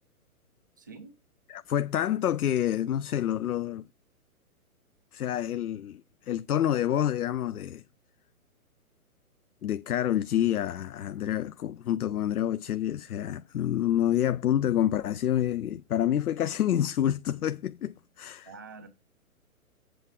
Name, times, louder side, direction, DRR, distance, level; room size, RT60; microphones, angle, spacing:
voice 1, 0.8-1.2 18.4-18.9, right 4 dB, 15° right, 0.4 m, -46 dB
voice 2, 1.5-3.9 5.1-7.8 9.6-18.5, left 11 dB, 75° left, 0.5 m, -28 dB
8.1 x 4.6 x 6.1 m
figure-of-eight pair, 125°, 44 cm